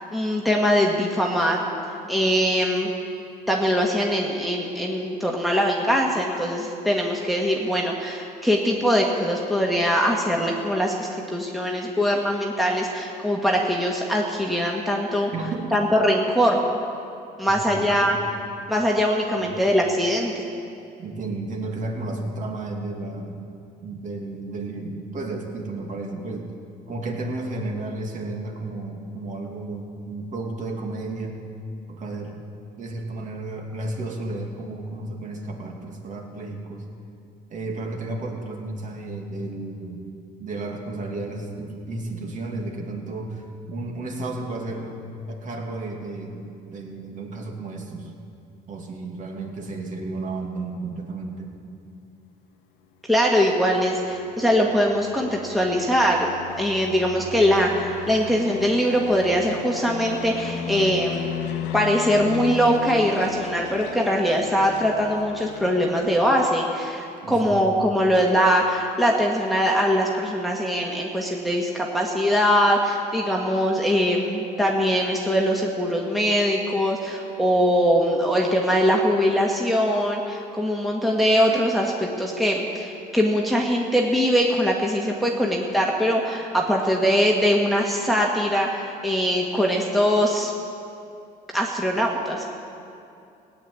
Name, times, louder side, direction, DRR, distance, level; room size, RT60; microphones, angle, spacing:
voice 1, 0.1-1.6 2.1-2.9 3.5-15.3 15.7-16.6 17.4-18.2 18.7-20.4 53.1-56.3 56.6-61.3 61.7-90.5 91.5-92.4, equal, ahead, -2 dB, 1.6 m, -22 dB
voice 2, 15.3-15.7 17.5-18.2 19.3-19.5 21.0-23.4 23.8-26.5 26.9-31.4 31.9-32.4 32.8-36.8 37.5-40.0 40.4-48.1 48.7-51.5 67.2-67.6, right 2 dB, 50° right, 1 dB, 2.6 m, -33 dB
sound 1, 53.2-66.5, left 9 dB, 85° left, 1.0 m, -36 dB
17.0 x 8.6 x 9.7 m, 2.6 s
cardioid pair, 110°, 17 cm